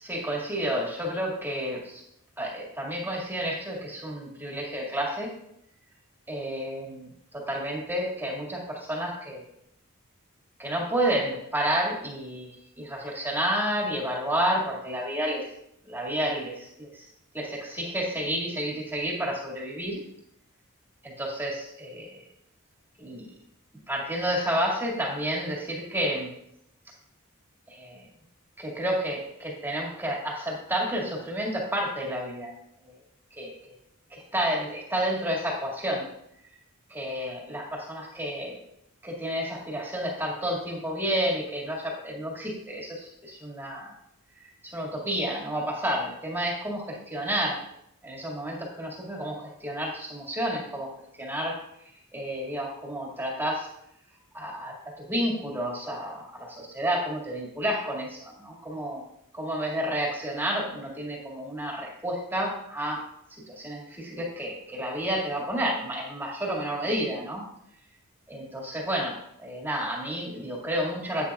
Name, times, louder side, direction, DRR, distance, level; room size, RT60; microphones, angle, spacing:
voice 1, 0.1-2.0 2.4-5.3 6.3-9.4 10.6-12.5 12.8-15.5 15.9-17.1 17.3-20.0 21.0-22.2 23.0-23.3 23.9-26.3 27.7-28.0 28.6-32.5 32.8-33.0 33.3-33.5 34.1-36.1 36.9-38.6 39.0-43.9 44.6-47.6 48.0-50.9 51.2-51.6 52.1-53.7 54.3-59.0 59.3-63.0 63.5-67.4 68.3-71.3, equal, 10° right, -2 dB, 2.0 m, -30 dB
10.5 x 9.3 x 2.4 m, 0.77 s
head